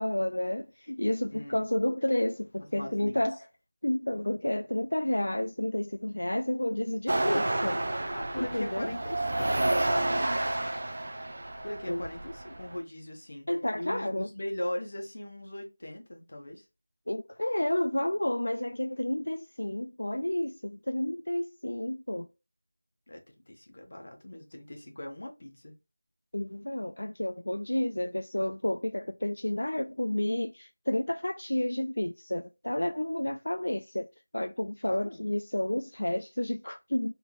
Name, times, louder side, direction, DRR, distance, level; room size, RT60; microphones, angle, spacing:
voice 1, 0.0-3.4 3.8-7.8 8.4-8.9 11.9-12.0 13.5-14.3 17.1-22.3 26.3-34.1 34.3-37.1, left 1 dB, 80° left, 0.3 m, -30 dB
voice 2, 1.3-1.6 2.6-3.3 8.1-9.8 11.6-13.5 13.7-16.6 23.1-23.2 23.5-25.7 34.9-35.2, left 1 dB, 55° left, 1.2 m, -39 dB
sound 1, 7.1-12.8, right 1 dB, 55° right, 0.6 m, -30 dB
3.5 x 3.2 x 2.4 m
figure-of-eight pair, 170°, 0 cm